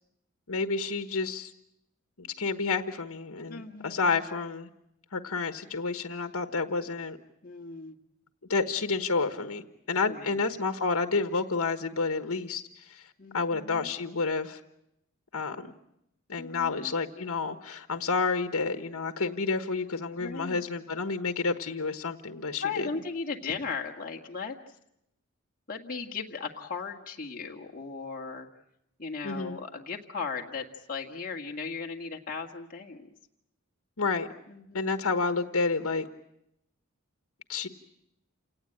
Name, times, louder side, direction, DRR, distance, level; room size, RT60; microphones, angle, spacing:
voice 1, 0.5-1.5 2.2-4.7 5.1-7.2 8.5-13.0 13.3-14.6 15.3-15.7 16.3-22.9 29.2-29.6 34.0-34.3 34.7-36.1 37.5-37.7, left 4 dB, 75° left, 8 dB, 1.3 m, -30 dB
voice 2, 3.5-4.2 7.4-8.0 10.1-10.4 13.2-13.9 16.4-16.9 20.2-20.6 22.6-24.6 25.7-28.5 29.0-33.1 34.5-34.9, left 5 dB, 40° left, 1 dB, 1.9 m, -37 dB
28.5 x 18.0 x 8.9 m, 0.82 s
head